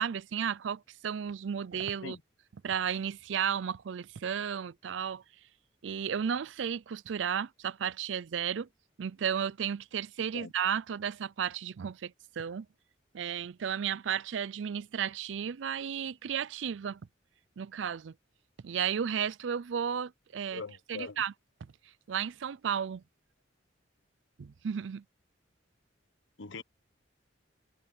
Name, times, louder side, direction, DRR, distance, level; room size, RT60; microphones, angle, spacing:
voice 1, 0.0-2.2 2.6-5.2 5.8-8.7 9.0-12.7 13.1-17.0 17.6-18.1 18.6-20.6 20.9-21.3 22.1-23.0 24.4-25.0, right 8 dB, 70° right, 0.4 m, -33 dB
voice 2, 20.5-21.2 26.4-26.6, left 4 dB, 80° left, 1.0 m, -41 dB
head